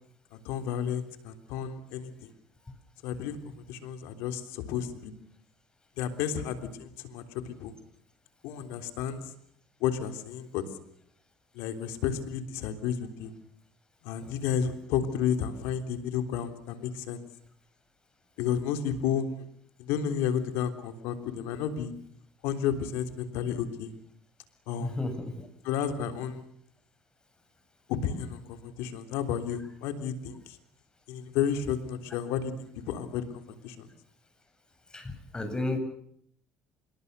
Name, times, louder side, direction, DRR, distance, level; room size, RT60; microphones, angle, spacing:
voice 1, 0.3-2.1 3.0-3.4 3.7-5.1 6.0-7.7 8.4-9.3 9.8-10.6 11.6-13.3 14.0-17.2 18.4-19.5 19.8-21.9 22.4-23.9 24.7-24.9 25.7-26.5 27.9-30.6 31.1-33.9, left 8 dB, 80° left, 8 dB, 3.5 m, -32 dB
voice 2, 24.8-25.5 34.9-35.8, left 2 dB, 20° left, 8 dB, 7.7 m, -33 dB
26.5 x 22.5 x 6.9 m, 0.69 s
supercardioid pair, 75°, 4 cm